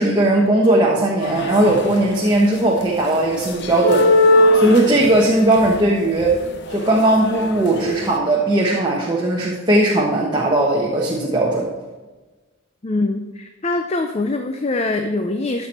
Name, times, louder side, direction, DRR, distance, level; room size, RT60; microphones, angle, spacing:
voice 1, 0.0-6.4 6.7-11.7, right 1 dB, 20° right, -3 dB, 1.1 m, -18 dB
sound 1, 1.2-2.3 2.8-8.1, left 1 dB, 55° left, 0.9 m, -20 dB
voice 2, 12.8-15.7, left 2 dB, 30° left, 6 dB, 0.5 m, -23 dB
13.0 x 6.2 x 4.3 m, 1.2 s
head